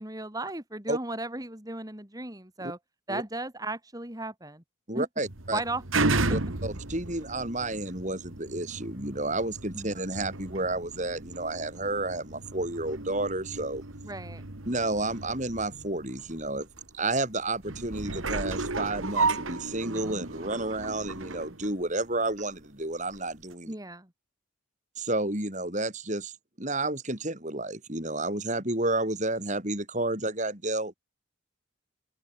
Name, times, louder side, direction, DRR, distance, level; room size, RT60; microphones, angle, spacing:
voice 1, 0.0-2.8 3.1-4.6 4.9-5.1 5.5-6.1 9.7-9.9 14.0-14.4 23.7-24.1, right 2 dB, 20° right, 2.9 m, -35 dB
voice 2, 4.9-5.6 6.3-13.8 14.7-16.7 16.9-23.7 25.0-26.3 26.6-30.9, right 2 dB, 35° right, 7.2 m, -31 dB
sound 1, 5.2-22.6 23.1-23.2, right 3 dB, 85° right, 2.3 m, -34 dB
head